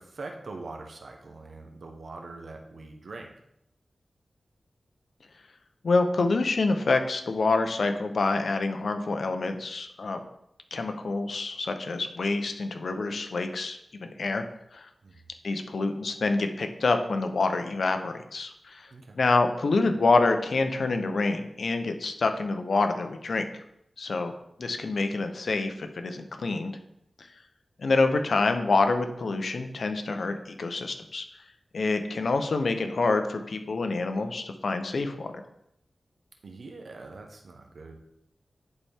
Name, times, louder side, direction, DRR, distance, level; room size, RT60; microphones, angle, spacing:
voice 1, 0.0-3.3 15.0-15.2 18.9-19.2 36.4-38.0, right 3 dB, 75° right, 3 dB, 1.1 m, -43 dB
voice 2, 5.8-10.2 10.7-14.4 14.7-14.9 15.4-18.9 19.1-23.5 24.0-24.3 24.6-26.8 27.8-31.2 31.7-35.3, left 3 dB, 75° left, 6 dB, 0.8 m, -27 dB
10.5 x 4.3 x 3.6 m, 0.77 s
cardioid pair, 55°, 0 cm